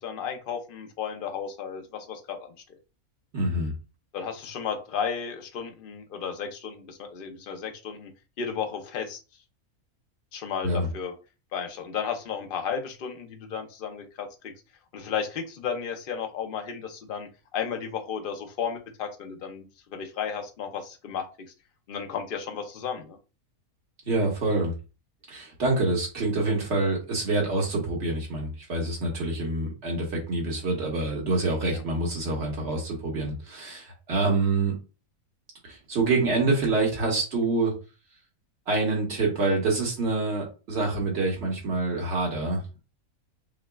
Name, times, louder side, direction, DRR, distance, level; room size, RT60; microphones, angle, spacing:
voice 1, 0.0-2.5 4.1-8.1 8.4-9.2 10.3-11.1 11.5-14.5 14.9-21.2 21.9-23.2 31.7-31.8, left 7 dB, 55° left, 5 dB, 0.6 m, -33 dB
voice 2, 3.3-3.7 10.6-10.9 24.1-24.7 25.3-34.7 35.6-37.7 38.7-42.6, right 2 dB, 50° right, -1 dB, 1.5 m, -26 dB
5.8 x 2.2 x 2.3 m, 0.32 s
omnidirectional pair, 1.5 m